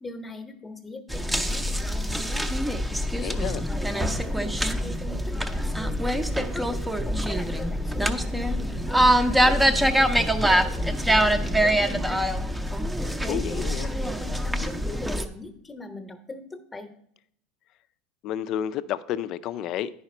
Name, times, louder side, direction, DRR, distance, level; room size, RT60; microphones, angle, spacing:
voice 1, 0.0-2.4 3.7-6.6 7.0-9.1 9.4-12.3 13.3-13.4 14.0-16.9, left 2 dB, 15° left, 0.9 m, -40 dB
sound 1, 1.1-15.2, equal, 5° right, 0.6 m, -24 dB
voice 2, 3.2-3.7 13.2-13.9 18.2-19.9, left 10 dB, 50° left, 0.4 m, -31 dB
9.5 x 4.9 x 4.3 m
supercardioid pair, 105°, 0 cm